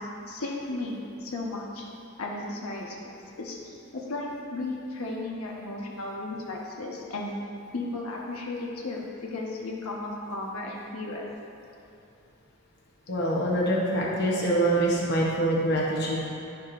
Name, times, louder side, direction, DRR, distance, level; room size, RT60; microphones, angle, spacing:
voice 1, 0.0-1.8 2.2-2.9 3.4-3.6 3.9-7.3 7.7-11.2, left 2 dB, 85° left, -2 dB, 1.1 m, -34 dB
voice 2, 13.1-16.3, right 1 dB, 50° left, -4 dB, 0.9 m, -25 dB
10.5 x 7.1 x 2.6 m, 2.7 s
head